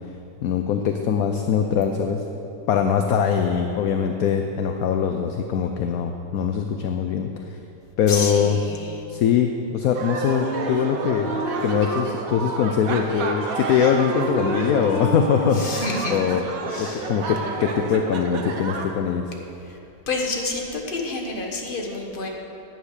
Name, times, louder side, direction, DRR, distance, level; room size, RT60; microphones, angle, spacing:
voice 1, 0.4-2.2 2.7-7.3 8.0-8.6 9.1-15.8 16.1-16.4 16.8-19.2, left 7 dB, 70° left, 5 dB, 0.9 m, -22 dB
voice 2, 8.1-9.0 15.5-16.3 16.7-17.1 19.6-19.8 20.1-22.3, left 3 dB, 30° left, 0 dB, 1.3 m, -29 dB
sound 1, 9.9-18.9, right 4 dB, 55° right, 1.2 m, -31 dB
Wind instrument woodwind instrument, 10.0-12.1 12.4-13.5 13.7-15.9, right 2 dB, 85° right, 3.5 m, -31 dB
10.0 x 9.1 x 6.5 m, 2.9 s
omnidirectional pair, 2.0 m